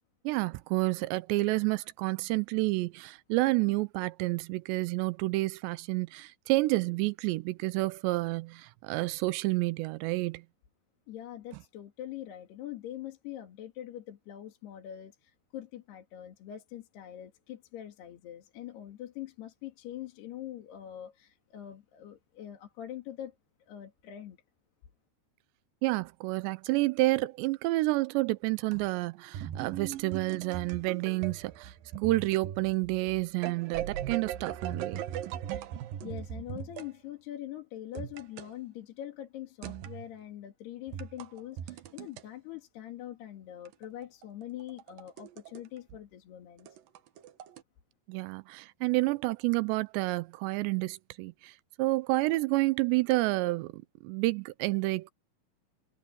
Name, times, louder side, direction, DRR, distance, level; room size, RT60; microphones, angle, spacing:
voice 1, 0.2-10.4 25.8-35.0 48.1-55.1, right 21 dB, 85° right, 2.7 m, -29 dB
voice 2, 11.1-23.4 23.6-24.4 36.0-46.8, left 12 dB, 65° left, 4.1 m, -43 dB
sound 1, 29.3-36.9 37.9-38.5 39.6-40.1 40.9-42.2 43.6-45.6 45.9-46.0 46.6-47.6, right 10 dB, 70° right, 2.4 m, -39 dB
omnidirectional pair, 5.2 m